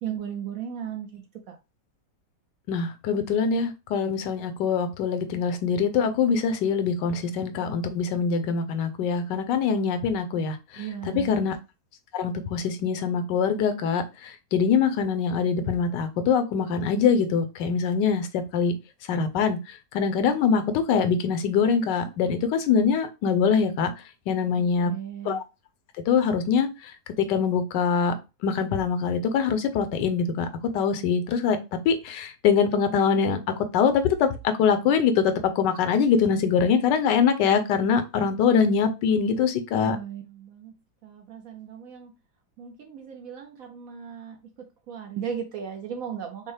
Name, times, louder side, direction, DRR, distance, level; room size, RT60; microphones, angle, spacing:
voice 1, 0.0-1.2 1.5-1.6 10.8-11.4 24.5-25.4 39.8-40.7 41.0-42.1 42.6-46.5, right 8 dB, 65° right, 4 dB, 0.9 m, -36 dB
voice 2, 2.7-10.8 11.1-11.6 12.1-18.7 19.1-23.9 24.3-24.9 25.2-25.4 26.1-28.1 28.4-30.5 30.7-31.6 31.8-40.0, left 6 dB, 80° left, 8 dB, 1.2 m, -23 dB
5.3 x 2.1 x 3.2 m, 0.27 s
omnidirectional pair, 1.9 m